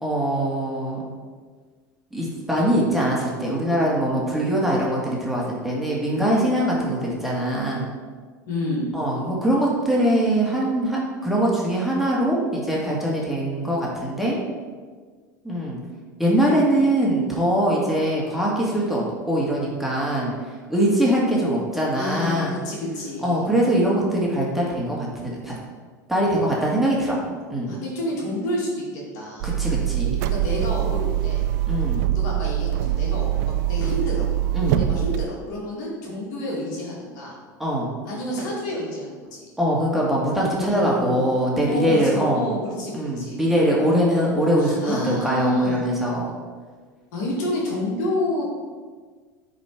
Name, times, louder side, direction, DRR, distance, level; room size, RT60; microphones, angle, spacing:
voice 1, 0.0-1.1 2.1-7.8 8.9-14.4 15.4-15.8 16.2-20.3 20.7-22.5 23.2-25.5 26.1-27.2 27.5-27.7 29.4-30.3 31.7-32.0 34.5-34.8 37.6-37.9 39.6-42.5 42.9-46.3, right 1 dB, ahead, -4 dB, 2.3 m, -22 dB
voice 2, 8.5-8.9 21.9-23.4 27.7-29.5 30.2-31.4 32.1-34.3 34.8-37.3 38.0-39.4 40.5-41.2 41.7-43.4 43.9-45.9 47.1-48.4, left 1 dB, 65° left, -3 dB, 2.3 m, -29 dB
sound 1, 29.4-35.3, right 12 dB, 65° right, 0.5 m, -23 dB
9.5 x 4.3 x 4.6 m, 1.5 s
hypercardioid pair, 80°, 10 cm